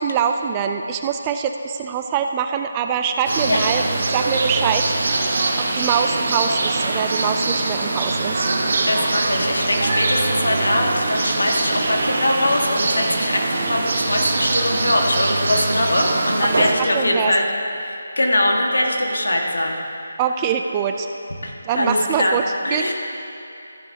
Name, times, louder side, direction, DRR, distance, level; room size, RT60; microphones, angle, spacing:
voice 1, 0.0-4.9 5.6-8.5 16.8-17.3 20.2-21.1 21.6-22.9, right 7 dB, 20° right, 6 dB, 0.3 m, -24 dB
sound 1, 3.2-16.7, right 2 dB, 50° right, 1.1 m, -22 dB
voice 2, 8.9-17.5 17.8-19.8 21.4-22.4 22.6-22.9, left 1 dB, 85° left, 0 dB, 1.7 m, -22 dB
14.5 x 10.0 x 2.8 m, 2.7 s
figure-of-eight pair, 165°, 0 cm